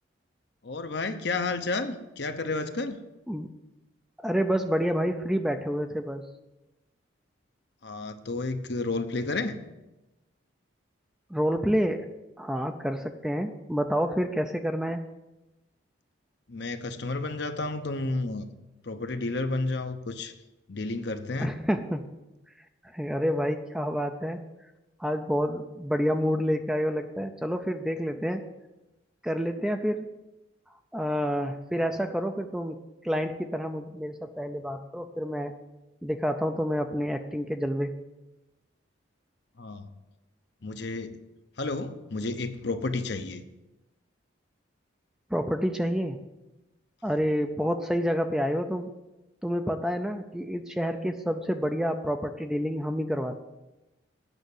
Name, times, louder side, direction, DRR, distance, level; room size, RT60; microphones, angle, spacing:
voice 1, 0.6-3.0 7.8-9.6 16.5-18.5 18.8-20.3 20.7-21.6 39.6-39.9 40.6-41.2 41.6-43.4, left 3 dB, 55° left, 8 dB, 0.7 m, -31 dB
voice 2, 4.2-6.2 11.3-12.1 12.4-15.0 21.4-22.1 22.8-24.4 25.0-28.4 29.2-30.0 30.9-32.8 33.0-35.6 36.0-37.9 45.3-46.2 47.0-48.9 49.4-53.4, equal, 5° right, 6 dB, 0.4 m, -28 dB
9.0 x 5.8 x 8.3 m, 1.0 s
head